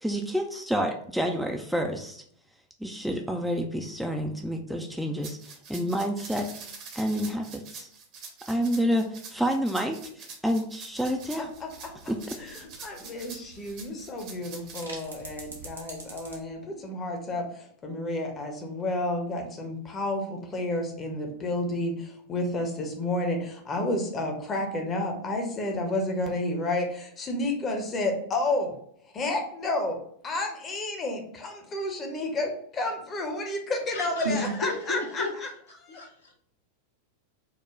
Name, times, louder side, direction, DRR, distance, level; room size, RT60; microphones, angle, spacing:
voice 1, 0.0-2.2 2.8-7.9 8.5-11.5 12.1-12.3, equal, ahead, 2 dB, 0.4 m, -29 dB
sound 1, 5.2-14.9, right 5 dB, 40° right, 0.9 m, -44 dB
sound 2, 10.9-16.4, right 2 dB, 75° right, 0.9 m, -47 dB
voice 2, 11.4-11.9 12.4-28.7 29.1-30.0 30.2-35.5 35.8-36.0, left 2 dB, 25° left, 3 dB, 0.8 m, -31 dB
voice 3, 33.9-35.3 35.9-36.3, left 1 dB, 70° left, -1 dB, 1.1 m, -32 dB
4.7 x 2.2 x 3.7 m, 0.65 s
figure-of-eight pair, 90°, 0 cm